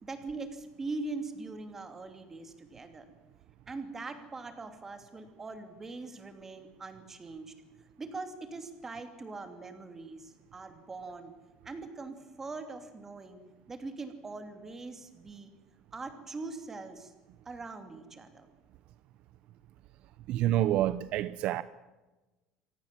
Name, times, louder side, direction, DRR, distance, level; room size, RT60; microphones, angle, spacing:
voice 1, 0.0-3.1 3.7-7.5 8.0-11.3 11.6-13.4 13.7-15.5 15.9-17.1 17.4-18.5, right 3 dB, 15° right, 2.8 m, -42 dB
voice 2, 20.3-21.6, right 13 dB, 55° right, 0.7 m, -27 dB
26.0 x 18.0 x 7.6 m
cardioid pair, 160°, 2 cm